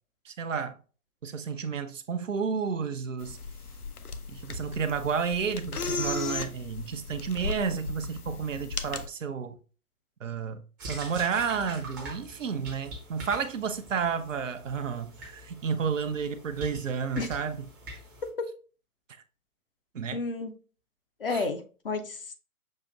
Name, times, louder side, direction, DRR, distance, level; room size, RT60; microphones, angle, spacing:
voice 1, 0.3-0.8 1.2-3.4 4.3-9.6 10.2-17.7 19.9-20.2 21.3-21.4, right 6 dB, 60° right, 0.6 m, -31 dB
sound 1, 3.2-9.1, left 4 dB, 85° left, 0.6 m, -36 dB
sound 2, 10.8-18.3, right 1 dB, 15° right, 0.6 m, -44 dB
voice 2, 20.1-20.5 21.2-22.3, left 3 dB, 40° left, 0.5 m, -31 dB
6.5 x 2.8 x 2.4 m
figure-of-eight pair, 125°, 44 cm